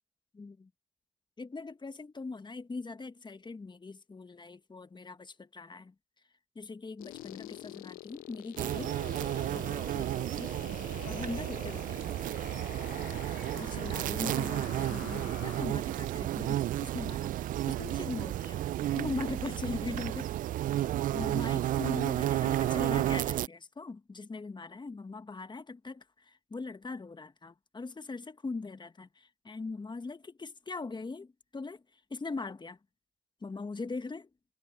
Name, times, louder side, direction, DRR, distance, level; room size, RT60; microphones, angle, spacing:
voice 1, 0.3-0.7 1.4-5.9 6.5-9.0 9.5-10.5 11.0-12.1 13.5-17.3 17.7-18.7 18.9-20.3 21.1-32.8 33.4-34.3, left 3 dB, 30° left, 1.6 m, -41 dB
sound 1, 7.0-15.6, left 17 dB, 75° left, 0.6 m, -47 dB
sound 2, 8.6-23.5, right 13 dB, 65° right, 0.6 m, -32 dB
sound 3, 11.7-20.4, right 22 dB, 85° right, 1.9 m, -58 dB
hypercardioid pair, 45°, 15 cm